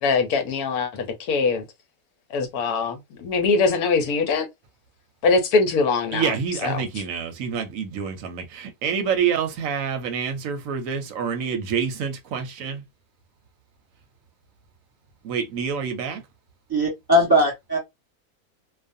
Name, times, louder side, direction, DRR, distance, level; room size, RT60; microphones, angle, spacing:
voice 1, 0.0-1.6 2.3-4.5 5.2-6.3 6.6-7.0, left 4 dB, 80° left, 1.1 m, -22 dB
voice 2, 6.1-12.8 15.2-16.2, right 7 dB, 70° right, 0.9 m, -27 dB
voice 3, 16.7-17.8, equal, 15° right, 1.2 m, -19 dB
2.4 x 2.4 x 2.5 m
omnidirectional pair, 1.6 m